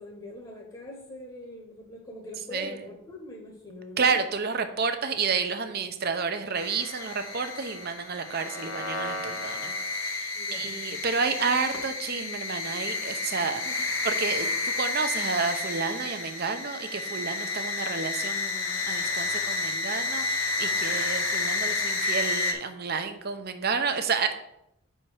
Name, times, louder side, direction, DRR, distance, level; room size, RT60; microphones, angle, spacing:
voice 1, 0.0-4.2 10.3-10.8 13.5-14.3, left 1 dB, 25° left, -1 dB, 1.1 m, -43 dB
voice 2, 4.0-13.6 14.0-24.4, right 5 dB, 50° right, 8 dB, 0.7 m, -30 dB
sound 1, 6.6-22.5, left 3 dB, 90° left, 1.1 m, -31 dB
5.5 x 4.5 x 6.4 m, 0.80 s
head